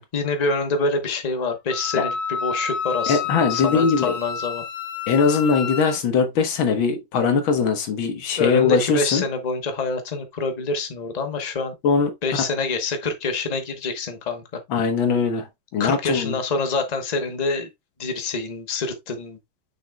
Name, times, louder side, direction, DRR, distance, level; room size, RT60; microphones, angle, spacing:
voice 1, 0.1-4.6 8.4-11.7 12.2-14.6 15.8-17.7 18.0-19.4, left 3 dB, 30° left, 0.8 m, -26 dB
Wind instrument woodwind instrument, 1.7-6.0, left 6 dB, 55° left, 1.0 m, -29 dB
voice 2, 3.1-4.2 5.1-9.2 11.8-12.1 12.4-12.5 14.7-15.5 15.7-16.3, left 5 dB, 85° left, 2.0 m, -21 dB
6.5 x 6.4 x 2.2 m
omnidirectional pair, 2.1 m